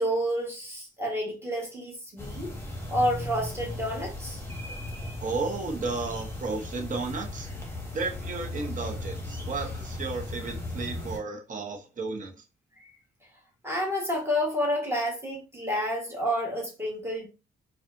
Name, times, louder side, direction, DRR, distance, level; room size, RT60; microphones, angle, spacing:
voice 1, 0.0-2.5 2.9-4.4 12.8-13.0 13.6-17.3, equal, 10° right, 1.5 m, -29 dB
sound 1, 2.2-11.2, left 1 dB, 10° left, 1.2 m, -37 dB
voice 2, 5.2-7.5 7.9-12.4, right 3 dB, 40° right, 1.0 m, -33 dB
4.2 x 2.3 x 2.7 m
cardioid pair, 90°, 20 cm